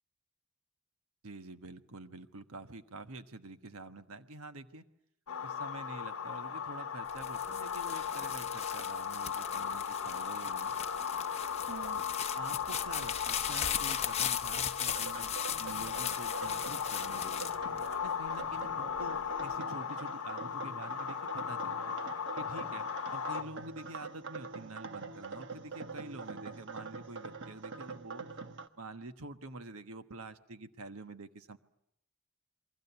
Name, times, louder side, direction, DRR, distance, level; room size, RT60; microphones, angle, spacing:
voice 1, 1.2-4.8 5.4-10.8 11.7-12.0 12.3-17.4 18.0-21.9 22.4-28.2 28.8-31.6, right 2 dB, 75° right, 9 dB, 1.3 m, -47 dB
sound 1, 5.3-23.4, left 7 dB, 70° left, 1.0 m, -37 dB
sound 2, 7.1-18.5 19.0-19.6, left 9 dB, 30° left, 0.9 m, -38 dB
sound 3, 14.9-28.7, right 4 dB, 55° right, 1.3 m, -45 dB
29.0 x 22.5 x 7.0 m, 0.78 s
head